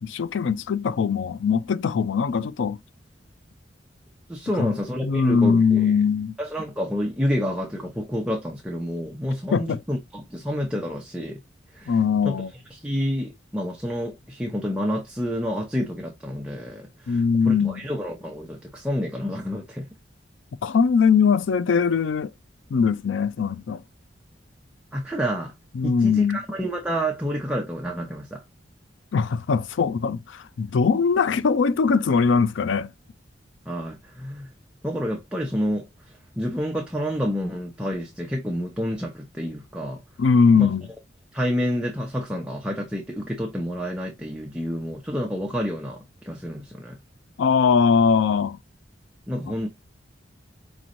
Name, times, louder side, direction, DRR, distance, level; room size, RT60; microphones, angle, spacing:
voice 1, 0.0-2.8 4.6-6.4 9.5-9.8 11.9-12.5 17.1-17.8 20.6-22.3 22.7-23.8 25.8-26.4 29.1-32.9 40.2-40.9 47.4-48.6, left 5 dB, 80° left, 0.4 m, -21 dB
voice 2, 4.3-5.9 6.4-11.4 11.7-12.0 12.2-19.9 24.9-25.5 25.8-28.4 33.7-34.5 34.8-40.0 40.5-40.7 41.3-47.0 49.3-49.7, equal, 5° right, 0.7 m, -29 dB
5.1 x 3.1 x 2.5 m
head